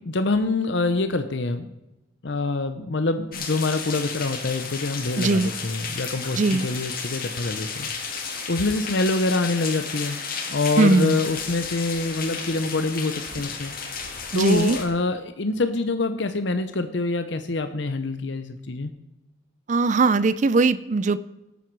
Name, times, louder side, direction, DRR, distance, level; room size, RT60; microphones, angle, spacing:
voice 1, 0.1-1.7 2.2-8.2 8.5-10.2 10.5-13.7 14.3-18.9, left 3 dB, 65° left, 9 dB, 0.8 m, -25 dB
sound 1, 3.3-14.8, left 5 dB, 50° left, 2.0 m, -33 dB
voice 2, 5.2-5.5 6.3-6.6 10.8-11.2 14.3-14.8 19.7-21.2, right 3 dB, 40° right, 16 dB, 0.4 m, -19 dB
17.5 x 9.2 x 4.6 m, 0.98 s
head